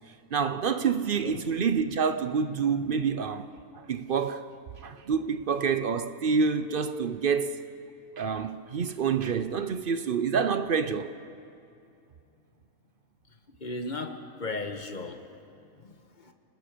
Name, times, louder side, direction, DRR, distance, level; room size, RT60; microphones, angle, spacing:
voice 1, 0.3-3.5 3.8-4.5 4.8-7.6 8.2-11.2, right 6 dB, 55° right, 0.6 m, -27 dB
voice 2, 13.6-15.2 15.8-16.3, left 2 dB, 35° left, 1.4 m, -36 dB
29.5 x 19.5 x 5.1 m
omnidirectional pair, 1.5 m